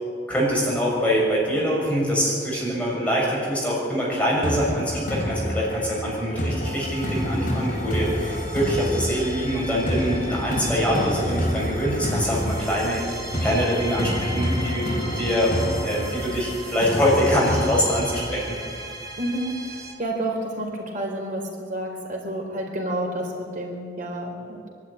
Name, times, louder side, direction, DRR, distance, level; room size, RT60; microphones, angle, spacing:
voice 1, 0.3-13.0 13.4-18.8, equal, 5° left, -5 dB, 6.6 m, -24 dB
sound 1, 4.4-19.4, equal, 50° left, 4.1 m, -29 dB
sound 2, 6.6-19.9, right 1 dB, 20° right, 2.6 m, -37 dB
voice 2, 19.2-24.7, right 1 dB, 45° right, 0 dB, 4.1 m, -30 dB
23.5 x 12.5 x 9.9 m, 2.3 s
head